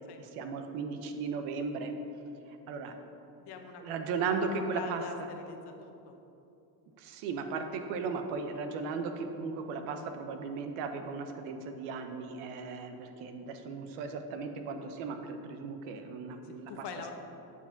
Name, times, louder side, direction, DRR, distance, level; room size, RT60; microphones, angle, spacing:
voice 1, 0.2-1.9 2.5-2.9 3.8-5.3 7.0-16.8, right 4 dB, 80° right, 6 dB, 1.0 m, -36 dB
voice 2, 3.5-3.8 4.1-4.5 4.7-5.1 5.5-6.1 16.7-17.1, left 6 dB, 55° left, 5 dB, 1.1 m, -43 dB
8.5 x 4.7 x 5.8 m, 2.8 s
supercardioid pair, 105°, 49 cm